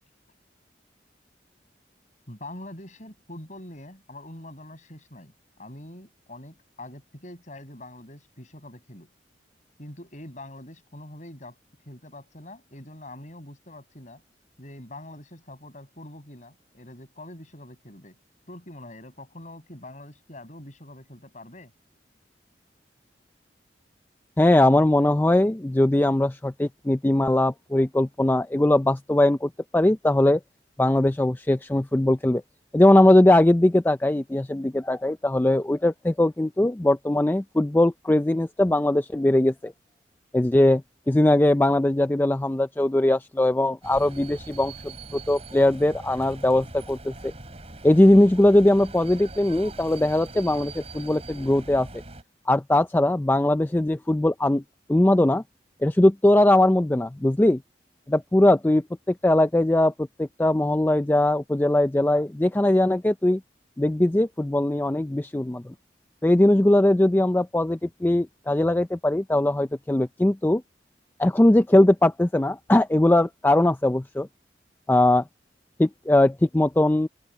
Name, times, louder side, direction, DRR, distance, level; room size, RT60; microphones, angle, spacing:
voice 1, 2.3-5.3 5.6-9.1 9.8-11.6 11.9-14.2 14.6-18.2 18.5-21.7, left 1 dB, 45° left, 6.1 m, -44 dB
voice 2, 24.4-30.4 30.8-32.4 32.7-39.7 40.3-47.3 47.8-51.9 52.5-54.6 54.9-55.4 55.8-57.6 58.1-63.4 63.8-65.7 66.2-70.6 71.2-74.3 74.9-75.2 75.8-77.1, left 1 dB, 10° left, 0.4 m, -20 dB
sound 1, 43.8-52.2, right 2 dB, 35° right, 3.5 m, -42 dB
head